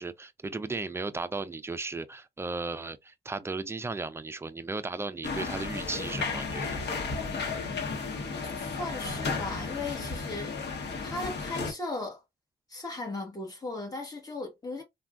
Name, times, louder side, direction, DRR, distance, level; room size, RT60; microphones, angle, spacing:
voice 1, 0.0-6.8, right 3 dB, 15° right, 0.3 m, -35 dB
sound 1, 5.2-11.7, left 4 dB, 80° left, 0.9 m, -33 dB
voice 2, 8.7-10.7 11.0-12.2 12.7-14.8, left 2 dB, 20° left, 1.3 m, -37 dB
3.5 x 2.2 x 2.3 m
cardioid pair, 100°, 17 cm